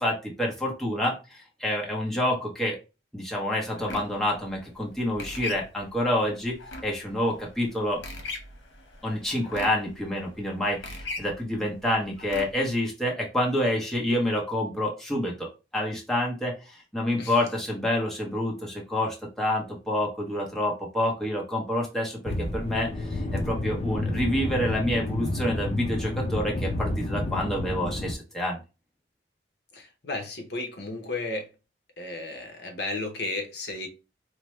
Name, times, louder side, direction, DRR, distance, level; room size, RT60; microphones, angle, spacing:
voice 1, 0.0-2.8 3.1-6.6 6.8-8.0 9.0-28.6, left 1 dB, 5° left, 0.8 m, -28 dB
sound 1, 3.8-12.7, left 2 dB, 85° left, 1.0 m, -40 dB
sound 2, 22.3-28.2, left 1 dB, 35° left, 0.4 m, -30 dB
voice 2, 29.7-31.5 32.0-33.9, left 2 dB, 60° left, 0.8 m, -33 dB
4.5 x 2.1 x 3.1 m
head